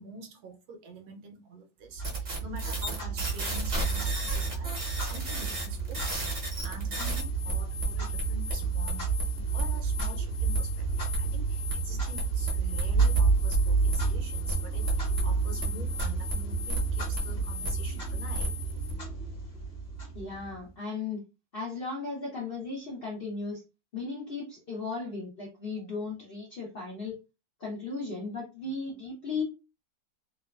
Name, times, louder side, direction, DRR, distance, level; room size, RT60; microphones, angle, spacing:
voice 1, 0.0-6.3 6.6-18.6, right 3 dB, 70° right, 1.0 m, -46 dB
Clock, 2.0-20.7, right 4 dB, 35° left, 0.9 m, -30 dB
sound 1, 2.0-18.9, left 1 dB, 40° right, 0.6 m, -36 dB
voice 2, 20.1-21.2 21.5-23.6 23.9-27.2 27.6-29.4, left 4 dB, 65° left, 0.5 m, -36 dB
2.9 x 2.2 x 2.2 m
omnidirectional pair, 1.9 m